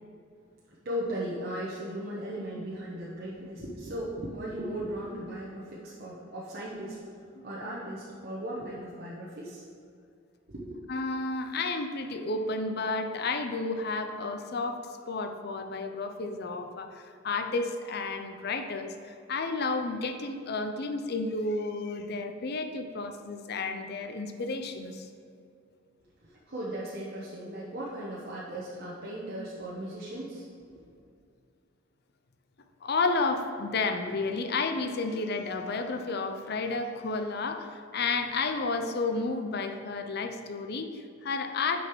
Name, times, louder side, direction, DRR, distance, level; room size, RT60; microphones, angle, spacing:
voice 1, 0.8-7.0 7.4-9.6 10.5-10.7 26.2-30.4, right 1 dB, 55° right, -6 dB, 1.0 m, -37 dB
voice 2, 10.9-14.8 15.1-25.1 32.8-41.8, left 3 dB, 55° left, 6 dB, 0.6 m, -31 dB
6.4 x 5.3 x 6.1 m, 2.4 s
head